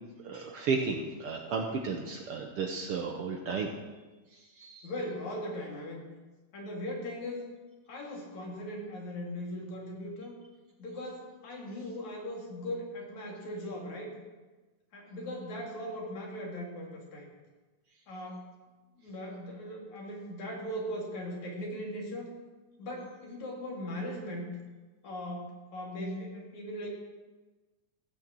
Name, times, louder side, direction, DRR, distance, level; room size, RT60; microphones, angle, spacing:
voice 1, 0.2-3.7 4.3-4.9, right 5 dB, 65° right, 2 dB, 1.6 m, -33 dB
voice 2, 4.8-6.0 6.5-7.4 7.9-10.3 10.8-14.1 14.9-17.3 18.1-18.5 19.0-22.3 22.8-24.5 25.0-26.9, equal, 70° left, -1 dB, 3.9 m, -39 dB
15.5 x 6.4 x 7.6 m, 1.2 s
omnidirectional pair, 3.5 m